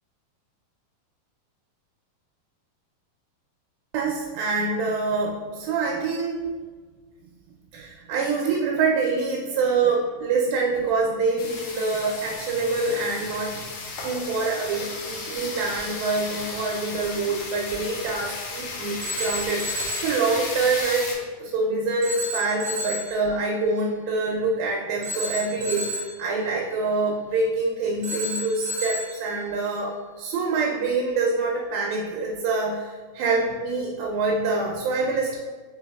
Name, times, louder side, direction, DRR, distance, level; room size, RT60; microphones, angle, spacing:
voice 1, 3.9-6.5 7.7-13.6 14.0-35.4, right 3 dB, 85° right, -2 dB, 2.3 m, -26 dB
sound 1, 11.4-21.1, left 3 dB, 80° left, 1.9 m, -34 dB
Telephone, 19.0-20.2 22.0-23.2 25.0-26.2 28.0-29.2, equal, 55° right, 1.5 m, -31 dB
5.6 x 3.9 x 2.3 m, 1.5 s
omnidirectional pair, 4.3 m